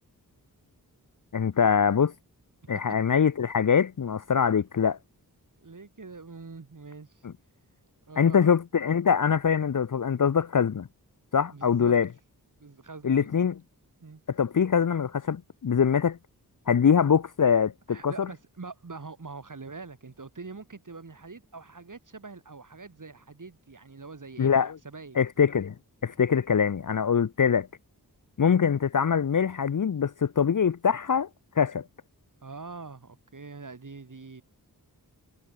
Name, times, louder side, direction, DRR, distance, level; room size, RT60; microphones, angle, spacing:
voice 1, 1.3-2.1 2.7-5.0 8.2-10.9 11.3-12.1 13.0-13.6 14.3-16.2 16.7-18.3 24.4-24.8 25.2-25.7 26.0-27.7 28.4-31.3 31.6-31.8, left 7 dB, 55° left, 0.8 m, -23 dB
voice 2, 5.6-7.2 8.1-8.5 11.5-11.9 12.6-13.5 14.0-14.2 17.9-24.5 24.8-25.2 32.4-34.4, right 4 dB, 55° right, 6.8 m, -44 dB
wide cardioid pair, 65°, 38 cm